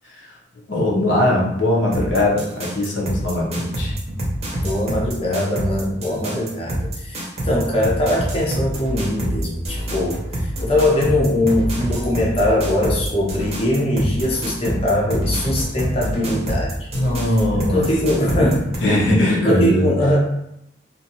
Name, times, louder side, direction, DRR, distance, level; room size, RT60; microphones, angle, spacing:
voice 1, 0.7-3.9 16.1-16.6 16.9-17.9 18.8-19.9, left 1 dB, 85° left, -3 dB, 0.7 m, -20 dB
sound 1, 1.9-18.8, right 1 dB, 35° right, 0.6 m, -26 dB
voice 2, 4.6-16.9 17.5-18.6 19.2-20.2, left 1 dB, 30° left, -4 dB, 0.5 m, -21 dB
2.5 x 2.2 x 2.7 m, 0.81 s
head